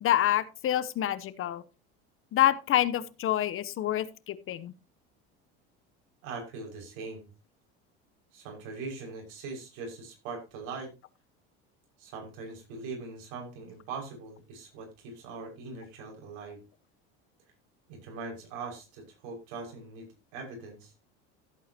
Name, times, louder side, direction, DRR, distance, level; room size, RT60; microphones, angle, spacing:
voice 1, 0.0-1.6 2.3-4.7, left 12 dB, 40° left, 15 dB, 0.9 m, -27 dB
voice 2, 6.2-7.3 8.3-10.9 12.0-16.6 17.9-20.1 20.3-20.9, right 4 dB, 70° right, 2 dB, 5.9 m, -41 dB
14.5 x 8.4 x 2.9 m, 0.29 s
supercardioid pair, 100°, 32 cm